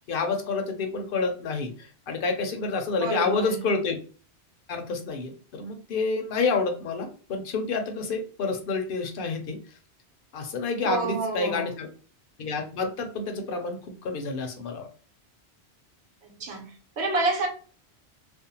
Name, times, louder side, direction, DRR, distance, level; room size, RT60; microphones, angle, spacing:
voice 1, 0.1-4.0 4.7-9.6 10.3-11.9 12.4-13.8 14.0-14.9, left 4 dB, 65° left, 0.7 m, -29 dB
voice 2, 3.0-3.7 10.8-11.7 16.2-17.5, right 3 dB, 90° right, 1.1 m, -29 dB
2.5 x 2.1 x 2.7 m
omnidirectional pair, 1.1 m